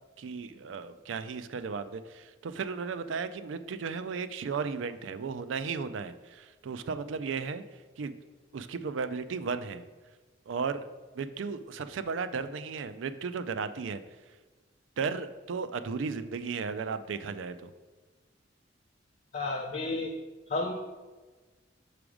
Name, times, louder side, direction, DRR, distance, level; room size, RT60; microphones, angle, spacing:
voice 1, 0.2-7.6 8.0-8.1 8.5-9.9 10.5-10.9 11.1-14.0 15.0-17.7, right 5 dB, 85° right, 12 dB, 0.4 m, -35 dB
voice 2, 19.3-20.1 20.5-20.7, left 2 dB, 40° left, 1 dB, 0.5 m, -32 dB
6.0 x 4.9 x 4.9 m, 1.3 s
head